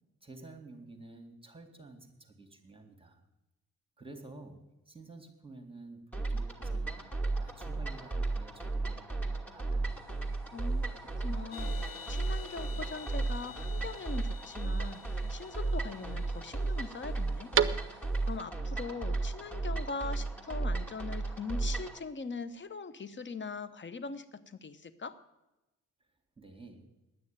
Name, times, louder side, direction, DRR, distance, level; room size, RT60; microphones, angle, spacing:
voice 1, 0.2-3.2 4.0-7.1 7.4-10.1 26.4-26.9, right 2 dB, 10° right, 4 dB, 2.2 m, -51 dB
sound 1, 6.1-22.0, right 3 dB, 5° left, 2.4 m, -34 dB
sound 2, 9.9-18.4, right 8 dB, 30° right, 0.7 m, -39 dB
voice 2, 10.5-10.9 11.2-11.8 12.1-17.5 17.9-18.0 18.3-25.2, left 4 dB, 25° left, 14 dB, 1.0 m, -41 dB
gestrichene Becken, 11.5-17.1, left 8 dB, 70° left, 1.2 m, -49 dB
10.0 x 9.5 x 9.1 m, 1.0 s
figure-of-eight pair, 45°, 43 cm